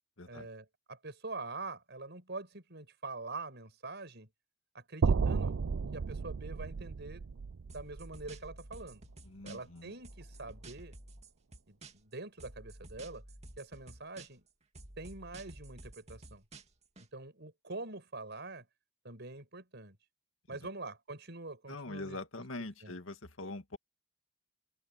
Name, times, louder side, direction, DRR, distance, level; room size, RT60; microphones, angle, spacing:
voice 1, 0.3-4.3 4.7-5.6 5.9-7.2 7.7-9.0 9.4-10.9 11.7-13.2 13.6-14.4 15.0-16.4 17.0-18.7 19.0-20.0 20.5-22.2 22.8-23.0, right 3 dB, 60° right, 6.6 m, -45 dB
sound 1, 5.0-9.2, right 5 dB, 90° right, 0.5 m, -33 dB
sound 2, 7.7-9.8 10.0-12.1 12.4-14.5 14.7-17.1, right 2 dB, 35° right, 2.2 m, -51 dB
voice 2, 9.2-9.9 20.5-20.6 21.7-23.8, left 2 dB, 90° left, 2.1 m, -43 dB
open air
head